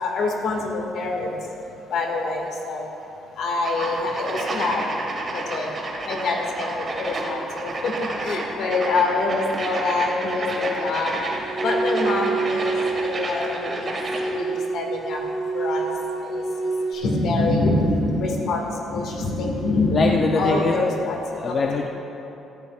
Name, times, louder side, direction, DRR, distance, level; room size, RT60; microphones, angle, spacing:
voice 1, 0.0-1.3 1.9-2.9 3.4-4.8 5.3-5.7 6.1-7.9 8.2-11.2 11.6-14.0 14.3-15.2 15.5-15.8 16.2-16.4 16.9-21.2 21.4-21.6, left 2 dB, 60° left, 1 dB, 1.9 m, -25 dB
sound 1, 3.6-14.4, right 2 dB, 30° right, 1.6 m, -30 dB
sound 2, 11.2-16.9, right 3 dB, 15° left, 2.0 m, -27 dB
voice 2, 19.9-20.7 21.3-21.9, left 4 dB, 35° left, 1 dB, 0.6 m, -22 dB
17.5 x 14.0 x 2.4 m, 3.0 s
cardioid pair, 165°, 0 cm